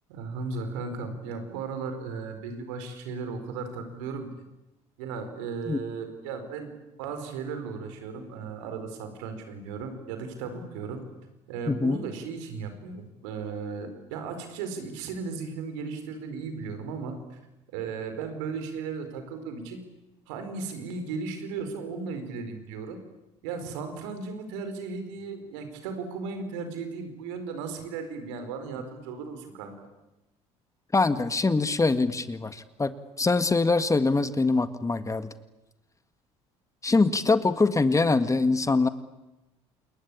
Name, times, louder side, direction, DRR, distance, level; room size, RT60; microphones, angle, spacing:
voice 1, 0.1-4.3 5.0-6.7 7.0-11.0 11.5-17.4 17.7-19.8 20.3-23.0 23.4-29.7, right 5 dB, 80° right, 8 dB, 4.7 m, -36 dB
voice 2, 11.7-12.0 30.9-32.9 33.2-35.3 36.8-38.9, left 3 dB, 20° left, 11 dB, 1.8 m, -23 dB
28.5 x 21.5 x 8.6 m, 0.96 s
hypercardioid pair, 70°, 15 cm